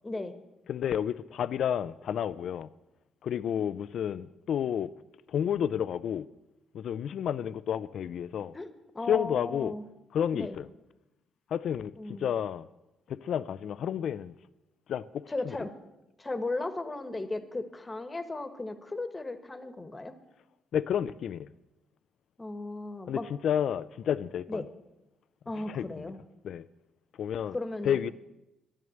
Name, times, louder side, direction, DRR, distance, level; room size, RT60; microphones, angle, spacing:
voice 1, 0.0-0.4 8.5-9.8 10.3-10.6 12.0-12.3 15.3-15.7 16.2-20.1 22.4-23.3 24.5-24.7 25.4-26.2 27.5-28.0, left 2 dB, 20° left, 1.3 m, -36 dB
voice 2, 0.7-2.7 3.2-4.9 5.3-6.3 6.7-8.5 9.1-9.7 10.1-10.7 11.5-11.9 12.2-12.7 13.1-14.3 14.9-15.6 20.7-21.5 23.1-24.6 25.6-26.1 26.4-26.6 27.2-27.6 27.8-28.1, left 9 dB, 65° left, 0.4 m, -31 dB
11.0 x 11.0 x 7.7 m
cardioid pair, 90°, 0 cm